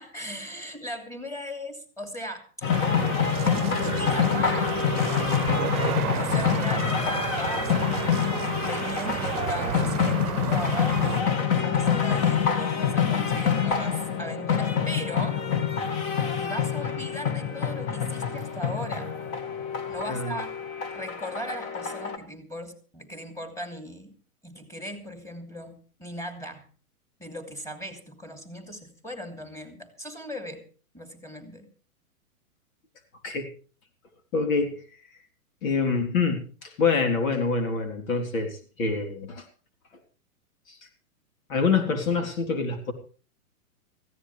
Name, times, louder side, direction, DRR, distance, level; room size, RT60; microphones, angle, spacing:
voice 1, 0.0-2.4 3.5-4.8 5.1-5.6 6.1-8.2 8.7-15.4 16.4-19.1 19.9-20.5 20.9-24.2 24.4-26.7 27.2-30.6 30.9-31.7, equal, 5° left, 5 dB, 2.9 m, -38 dB
sound 1, 2.6-22.2, left 7 dB, 30° left, 2.1 m, -26 dB
sound 2, 2.7-11.2, right 11 dB, 85° right, 0.9 m, -32 dB
voice 2, 34.3-34.8 35.6-39.5 40.7-40.8 41.5-42.9, left 4 dB, 65° left, 5 dB, 3.7 m, -26 dB
19.5 x 15.5 x 3.3 m, 0.39 s
hypercardioid pair, 140°, 44 cm